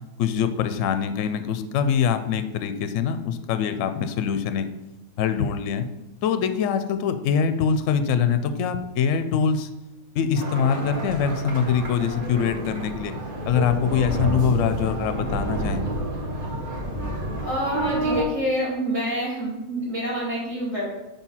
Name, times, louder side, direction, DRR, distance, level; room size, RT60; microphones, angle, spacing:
voice 1, 0.2-4.7 5.2-5.9 6.2-9.7 10.1-13.1 13.5-15.8, left 7 dB, 70° left, 10 dB, 0.9 m, -23 dB
sound 1, 10.3-18.2, right 1 dB, 35° right, 1.5 m, -29 dB
voice 2, 17.4-20.9, equal, 60° right, -10 dB, 2.2 m, -27 dB
5.4 x 4.5 x 5.6 m, 0.97 s
omnidirectional pair, 1.5 m